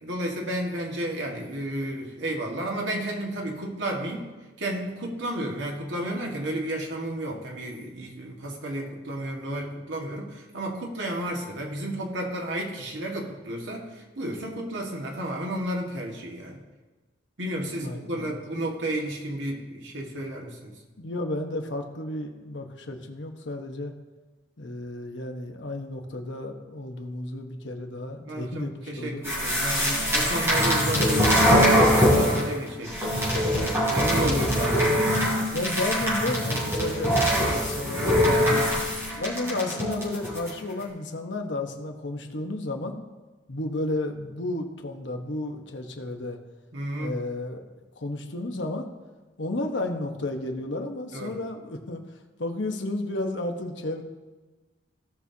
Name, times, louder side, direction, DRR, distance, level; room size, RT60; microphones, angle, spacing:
voice 1, 0.0-4.3 4.6-16.6 17.4-20.8 28.2-33.0 33.6-35.2 37.9-38.7 46.7-47.1 51.1-51.4, right 1 dB, 85° right, 0 dB, 1.7 m, -32 dB
voice 2, 17.7-18.3 21.0-23.9 24.6-29.2 34.2-34.5 35.5-38.6 39.2-43.0 43.5-46.4 47.0-47.6 48.0-48.9 49.4-52.0 52.4-54.0, left 2 dB, 80° left, 4 dB, 1.1 m, -32 dB
sound 1, 29.2-32.5 32.8-40.5, equal, 15° right, 3.3 m, -23 dB
17.0 x 6.1 x 2.8 m, 1.2 s
head